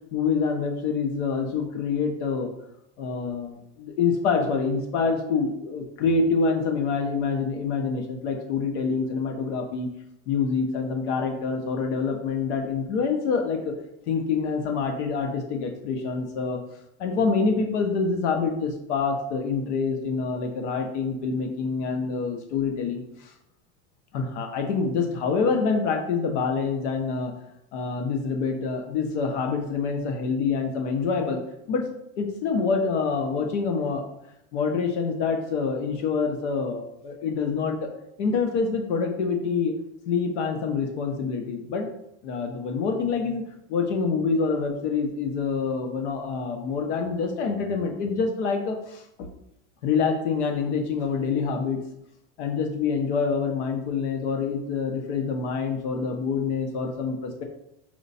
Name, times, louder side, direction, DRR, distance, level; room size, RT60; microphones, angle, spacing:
voice 1, 0.1-2.5 3.0-9.9 10.3-13.8 14.1-16.6 17.0-23.3 24.1-27.3 27.7-31.4 31.7-31.8 32.2-34.0 34.5-37.9 38.2-39.7 40.1-41.9 42.2-43.4 43.7-49.3 49.8-51.8 52.4-57.4, left 5 dB, 75° left, 4 dB, 1.3 m, -26 dB
5.0 x 4.6 x 4.2 m, 0.80 s
supercardioid pair, 160°, 35 cm